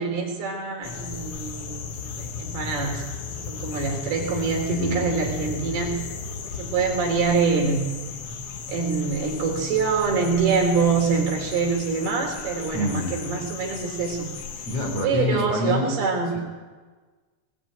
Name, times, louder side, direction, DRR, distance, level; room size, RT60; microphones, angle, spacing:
voice 1, 0.0-6.0 6.5-7.8 8.7-14.3 14.6-14.7 15.0-16.3, right 5 dB, 70° right, 2 dB, 5.6 m, -25 dB
sound 1, 0.8-15.1, left 5 dB, 65° left, 1.4 m, -35 dB
voice 2, 4.7-5.0 12.7-13.1 14.7-16.0 16.3-16.4, left 1 dB, 40° left, 2 dB, 4.8 m, -26 dB
21.5 x 19.0 x 8.9 m, 1.4 s
omnidirectional pair, 4.7 m